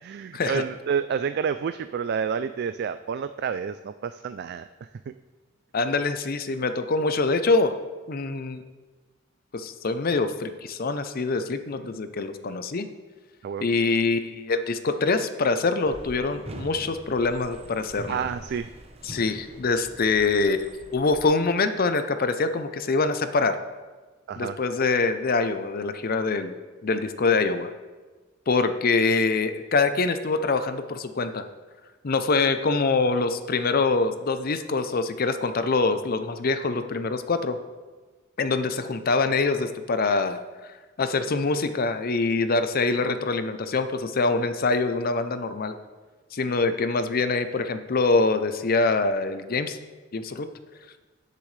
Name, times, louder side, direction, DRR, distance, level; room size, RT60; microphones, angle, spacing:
voice 1, 0.0-4.7 5.1-5.2 13.4-13.7 18.1-18.7 24.3-24.6, right 6 dB, 55° right, 11 dB, 0.3 m, -29 dB
voice 2, 5.7-7.7 8.1-8.6 9.5-12.9 13.6-18.2 19.0-23.6 24.4-26.6 26.8-27.7 28.5-31.4 32.0-37.6 38.4-40.4 41.0-45.7 46.3-49.8 50.1-50.5, left 3 dB, 50° left, 10 dB, 0.6 m, -24 dB
sound 1, 15.8-21.2, right 1 dB, 30° right, 0.9 m, -43 dB
17.5 x 6.7 x 3.3 m, 1.3 s
head